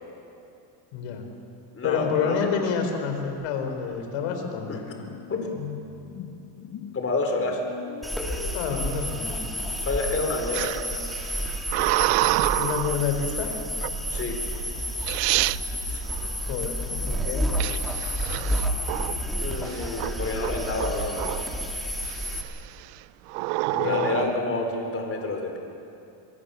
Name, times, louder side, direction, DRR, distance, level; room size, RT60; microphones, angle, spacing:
voice 1, 0.9-1.2 1.8-5.0 8.5-9.5 12.6-13.5 16.5-17.4 23.8-24.3, left 6 dB, 80° left, 5 dB, 4.3 m, -28 dB
voice 2, 1.7-2.5 4.7-5.0 5.3-5.5 6.9-7.6 9.8-10.7 14.1-14.4 15.9-16.0 19.4-21.4 23.7-25.6, left 3 dB, 25° left, 3 dB, 3.9 m, -29 dB
sound 1, 4.5-9.5, left 9 dB, 50° left, 1.5 m, -42 dB
sound 2, 8.0-22.4, equal, ahead, 3.0 m, -30 dB
sound 3, 10.5-13.0 13.8-14.2 14.8-14.9 15.1-15.6 17.6-19.3 19.7-20.1 20.4-21.6 22.1-22.5 23.3-24.3, right 21 dB, 80° right, 0.6 m, -27 dB
24.0 x 22.5 x 7.0 m, 2.6 s
cardioid pair, 120°, 50 cm